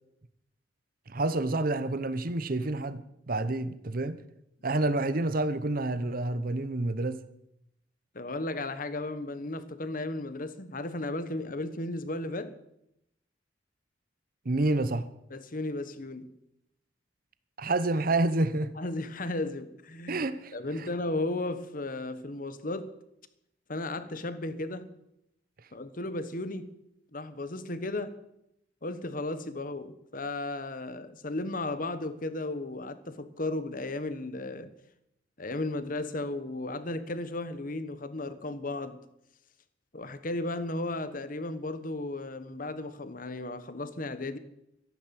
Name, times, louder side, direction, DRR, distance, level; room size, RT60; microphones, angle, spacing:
voice 1, 1.1-4.2 4.6-7.2 14.4-15.0 17.6-18.7 20.1-20.5, right 2 dB, 50° right, 0.8 m, -28 dB
voice 2, 8.1-12.5 15.3-16.3 18.8-20.2 20.5-22.9 23.7-24.9 25.7-26.7 27.1-28.2 28.8-34.7 35.4-39.0 39.9-44.4, left 2 dB, 50° left, 1.3 m, -35 dB
14.0 x 11.0 x 7.6 m
head